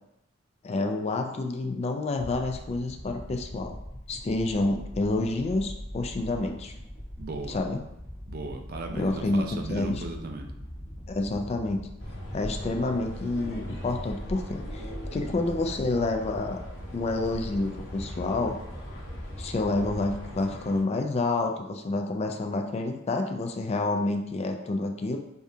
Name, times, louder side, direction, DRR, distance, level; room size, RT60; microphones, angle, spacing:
voice 1, 0.6-3.8 4.1-6.7 7.5-7.8 8.9-10.0 11.1-11.9 12.3-16.6 16.9-18.6 19.4-25.2, left 2 dB, 30° left, 4 dB, 0.3 m, -28 dB
sound 1, 2.2-20.5, equal, 5° left, 1.0 m, -42 dB
voice 2, 7.2-7.6 8.3-10.5, right 3 dB, 50° right, 4 dB, 0.4 m, -36 dB
sound 2, 12.0-20.8, equal, 65° left, 0.8 m, -41 dB
4.9 x 2.3 x 2.7 m, 0.84 s
head